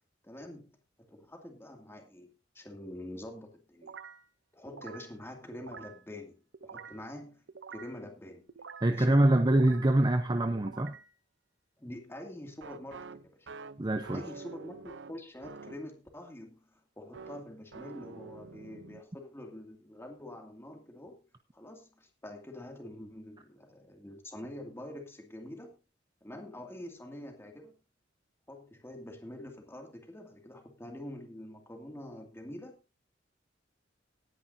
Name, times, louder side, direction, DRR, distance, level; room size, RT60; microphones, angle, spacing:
voice 1, 0.2-0.8 1.1-4.0 4.5-7.4 7.7-8.5 8.9-9.3 11.8-13.5 14.1-21.2 21.5-25.8 26.2-27.7 28.5-33.0, left 1 dB, 15° left, 2.3 m, -46 dB
sound 1, 3.8-4.3 4.7-5.1 5.5-6.0 6.5-7.1 7.5-8.0 8.5-9.0 9.4-10.0 10.5-11.1 12.6-15.9 17.1-19.0, right 5 dB, 75° right, 0.6 m, -47 dB
voice 2, 8.8-11.0 13.8-14.2, right 1 dB, 25° right, 0.7 m, -25 dB
18.5 x 10.0 x 2.7 m
head